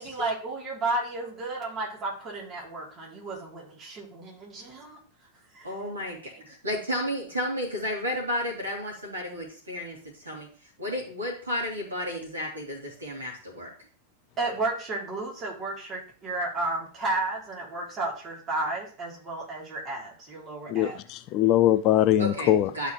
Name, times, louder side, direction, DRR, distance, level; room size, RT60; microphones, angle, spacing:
voice 1, 0.0-5.0 5.5-5.7 6.3-6.4 14.4-21.0, right 2 dB, 30° right, 3.2 m, -32 dB
voice 2, 5.6-6.2 6.5-10.5 10.8-13.7 22.2-22.9, left 1 dB, 80° right, 2.9 m, -32 dB
voice 3, 20.7-22.7, left 12 dB, 40° left, 0.4 m, -22 dB
11.5 x 4.9 x 3.1 m
figure-of-eight pair, 90°, 0 cm